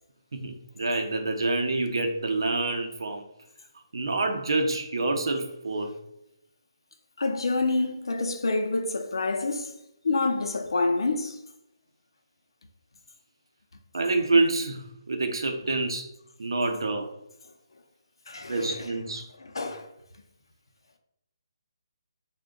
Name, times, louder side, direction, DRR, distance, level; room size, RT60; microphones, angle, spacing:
voice 1, 0.3-3.2 3.9-5.9 13.9-16.1 16.4-17.1 18.5-19.3, right 2 dB, 65° right, 0.6 m, -27 dB
voice 2, 7.2-9.8 10.0-11.4 18.3-18.9 19.4-19.9, left 3 dB, 70° left, 0.5 m, -27 dB
3.4 x 2.2 x 3.7 m
hypercardioid pair, 180°, 3 cm